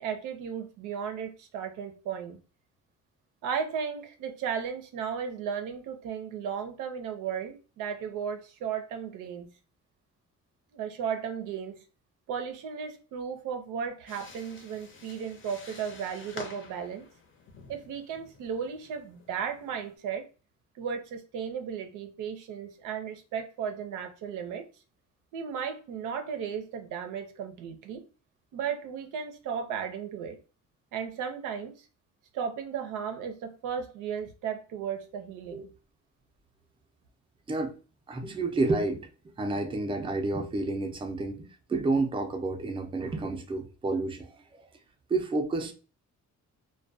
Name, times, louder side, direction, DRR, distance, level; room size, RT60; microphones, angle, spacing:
voice 1, 0.0-2.4 3.4-9.5 10.7-11.8 12.3-17.1 17.7-20.2 20.8-24.6 25.3-28.0 28.5-30.4 30.9-31.8 32.3-35.7, right 7 dB, 90° right, 0.5 m, -35 dB
sound 1, 14.1-20.0, left 4 dB, 40° left, 0.6 m, -49 dB
voice 2, 38.1-39.1 39.4-44.6 45.1-45.7, right 3 dB, 15° right, 0.4 m, -30 dB
2.2 x 2.1 x 2.5 m
cardioid pair, 90°, 30 cm